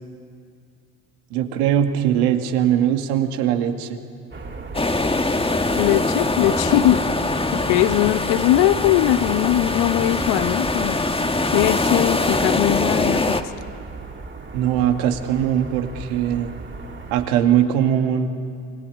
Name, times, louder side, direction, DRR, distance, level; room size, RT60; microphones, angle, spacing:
voice 1, 1.3-4.0 14.5-16.5 17.1-18.3, right 10 dB, 75° right, 6 dB, 2.4 m, -20 dB
sound 1, 4.3-17.3, right 3 dB, 25° right, 3.4 m, -37 dB
sound 2, 4.7-13.4, left 2 dB, 10° left, 1.7 m, -23 dB
voice 2, 5.8-7.0 7.5-11.0 11.5-13.4, left 14 dB, 65° left, 12 dB, 1.3 m, -20 dB
28.5 x 20.0 x 8.6 m, 2.3 s
hypercardioid pair, 65°, 47 cm